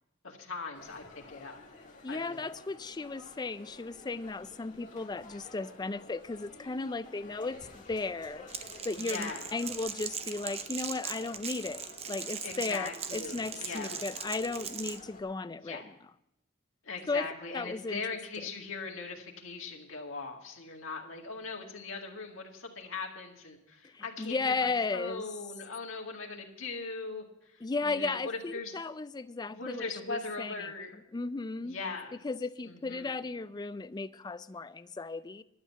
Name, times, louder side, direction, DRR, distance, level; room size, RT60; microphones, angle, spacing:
voice 1, 0.2-1.6 2.1-2.4 9.0-9.4 12.4-14.0 15.6-15.9 16.8-27.2 27.5-28.7 29.5-31.0 31.6-32.2 32.6-33.2, left 4 dB, 70° left, 1 dB, 2.0 m, -40 dB
sound 1, 0.7-15.2, left 2 dB, 40° left, 1.9 m, -51 dB
voice 2, 2.0-15.9 17.1-17.3 17.5-18.0 23.8-25.2 27.6-29.8 30.1-30.7 31.1-31.8 32.1-35.4, left 3 dB, 20° left, 14 dB, 0.4 m, -35 dB
Crackle, 8.5-15.0, right 7 dB, 30° right, 0.7 m, -40 dB
12.0 x 7.7 x 8.3 m, 0.84 s
head